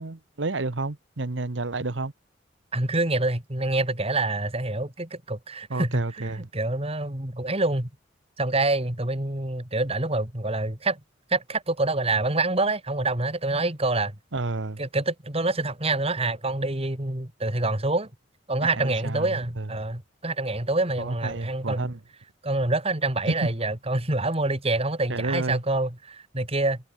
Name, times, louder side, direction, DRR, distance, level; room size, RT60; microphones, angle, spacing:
voice 1, 0.0-2.1 5.7-6.5 14.3-14.8 18.6-19.7 21.0-22.0 23.3-23.5 25.1-25.6, right 3 dB, 75° right, 1.1 m, -30 dB
voice 2, 2.7-7.9 8.4-11.0 11.3-14.1 14.8-18.1 18.5-21.9 22.4-26.8, right 2 dB, 30° right, 3.0 m, -26 dB
head